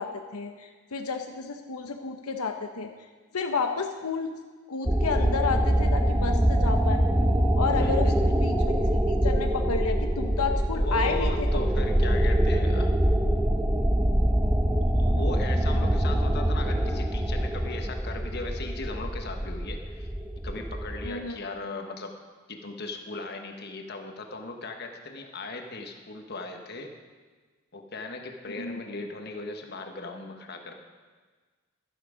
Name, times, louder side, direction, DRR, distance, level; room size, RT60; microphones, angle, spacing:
voice 1, 0.0-2.9 3.3-4.4 4.7-7.0 7.6-8.1 8.4-11.6 15.7-15.9 21.0-21.4 28.5-28.8, left 5 dB, 85° left, 5 dB, 0.8 m, -31 dB
sound 1, 4.9-21.1, equal, 5° right, 0.6 m, -24 dB
voice 2, 7.7-8.1 10.7-12.9 14.9-20.1 20.4-22.1 22.5-26.9 27.7-30.7, left 2 dB, 45° left, 4 dB, 1.2 m, -38 dB
12.0 x 12.0 x 5.0 m, 1.4 s
head